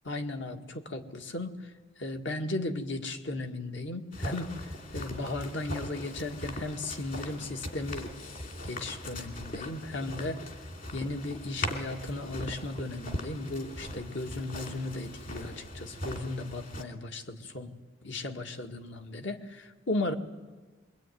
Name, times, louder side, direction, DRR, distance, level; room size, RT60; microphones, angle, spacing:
voice 1, 0.0-1.5 2.0-8.1 8.6-10.4 10.9-17.7 18.0-20.1, left 2 dB, 65° left, 4 dB, 2.0 m, -36 dB
sound 1, 4.1-16.8, left 1 dB, 45° left, 2.7 m, -40 dB
25.0 x 23.0 x 9.3 m, 1.3 s
head